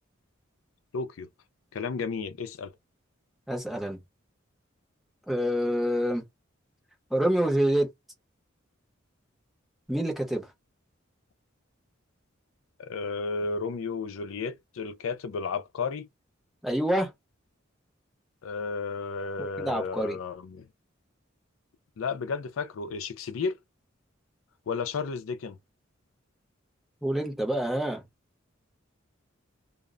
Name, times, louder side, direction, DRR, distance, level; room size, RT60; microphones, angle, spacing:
voice 1, 0.9-1.3 1.7-2.7 12.8-16.1 18.4-20.7 22.0-23.6 24.7-25.6, left 4 dB, 85° left, 0.4 m, -33 dB
voice 2, 3.5-4.0 5.3-6.2 7.1-7.9 9.9-10.5 16.6-17.1 19.6-20.2 27.0-28.0, right 1 dB, ahead, 0.7 m, -26 dB
2.1 x 2.0 x 3.6 m
head